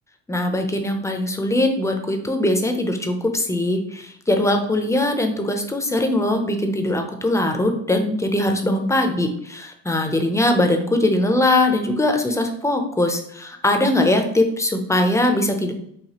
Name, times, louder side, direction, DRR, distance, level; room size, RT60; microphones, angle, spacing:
voice 1, 0.3-15.7, left 1 dB, 5° left, 4 dB, 0.6 m, -21 dB
4.9 x 2.4 x 2.9 m, 0.71 s
supercardioid pair, 80°, 41 cm